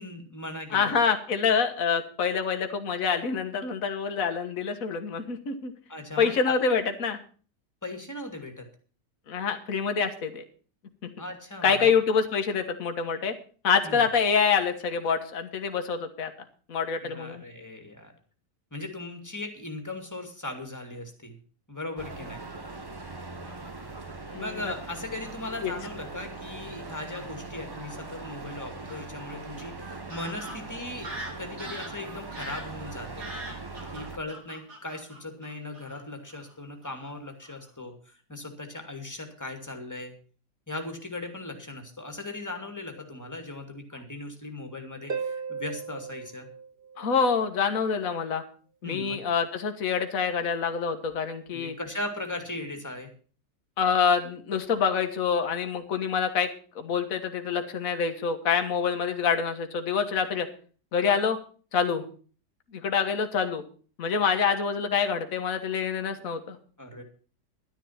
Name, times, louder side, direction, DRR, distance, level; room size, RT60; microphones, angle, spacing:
voice 1, 0.0-0.9 5.9-6.5 7.8-8.7 11.2-11.9 13.8-14.0 17.0-18.1 18.7-21.4 21.7-22.4 24.3-33.3 33.9-40.1 40.7-46.5 48.8-49.2 51.5-53.1 66.8-67.0, left 2 dB, 10° left, 5 dB, 2.2 m, -38 dB
voice 2, 0.7-5.7 6.2-7.2 9.3-10.4 11.0-11.1 11.6-13.3 13.6-16.3 16.7-17.4 24.3-24.7 25.6-25.7 47.0-48.4 48.8-51.8 53.8-56.5 56.7-60.5 60.9-61.4 61.7-62.0 62.7-63.6 64.0-66.6, left 6 dB, 55° left, 7 dB, 1.7 m, -26 dB
sound 1, 22.0-34.2, right 3 dB, 15° right, 0.9 m, -41 dB
Fowl / Bird vocalization bird call bird song, 23.4-24.1 24.9-25.6 26.4-26.5 26.8-27.2 28.9-29.0 29.6-29.7 30.1-36.0 36.3-36.5 36.8-37.1 37.4-37.7, right 1 dB, 70° right, 3.5 m, -43 dB
Harp, 45.1-47.6 51.1-51.2, right 5 dB, 35° right, 1.4 m, -36 dB
12.0 x 10.0 x 5.8 m, 0.41 s
omnidirectional pair, 1.8 m